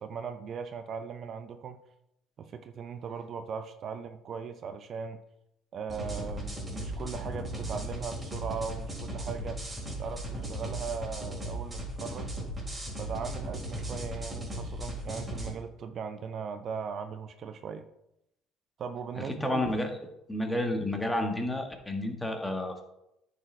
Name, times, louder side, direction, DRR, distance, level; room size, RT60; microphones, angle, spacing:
voice 1, 0.0-1.8 2.4-5.2 5.7-9.6 10.0-12.4 13.0-17.9 18.8-19.7, right 6 dB, 50° right, 9 dB, 0.6 m, -38 dB
sound 1, 5.9-15.5, right 1 dB, 20° right, 3.4 m, -37 dB
voice 2, 19.2-19.9 20.3-22.8, left 1 dB, 10° left, 4 dB, 1.6 m, -31 dB
9.9 x 5.1 x 4.6 m, 0.83 s
supercardioid pair, 80°, 0 cm